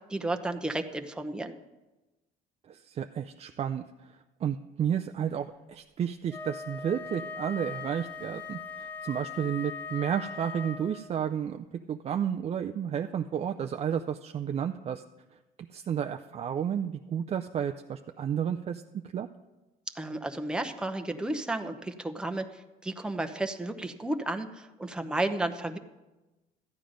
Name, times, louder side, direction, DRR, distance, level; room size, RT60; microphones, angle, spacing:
voice 1, 0.1-1.6 20.0-22.5 22.8-25.8, right 2 dB, 5° right, 6 dB, 0.8 m, -32 dB
voice 2, 2.7-15.0 15.3-15.4 15.7-19.3, right 8 dB, 40° right, 7 dB, 0.4 m, -32 dB
Wind instrument woodwind instrument, 6.3-11.2, left 5 dB, 10° left, 1.5 m, -40 dB
13.0 x 9.3 x 5.1 m, 1.1 s
cardioid pair, 110°, 17 cm